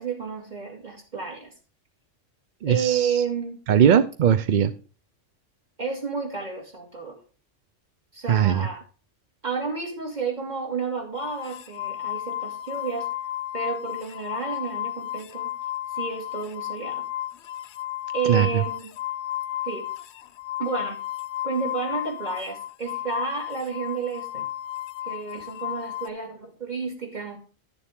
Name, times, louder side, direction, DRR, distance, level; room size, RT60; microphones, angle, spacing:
voice 1, 0.0-1.5 2.7-3.6 5.8-7.2 8.1-8.8 9.4-13.1 13.5-15.5 15.9-17.0 18.1-18.9 19.6-19.9 20.6-21.0 21.4-24.5 25.0-27.4, right 5 dB, 35° right, 0 dB, 2.6 m, -31 dB
voice 2, 2.6-3.2 3.7-4.7 8.3-8.7 18.3-18.6, right 9 dB, 55° right, 11 dB, 0.5 m, -20 dB
sound 1, 11.1-26.1, left 13 dB, 70° left, 0.8 m, -33 dB
11.5 x 6.9 x 3.6 m, 0.37 s
omnidirectional pair, 1.3 m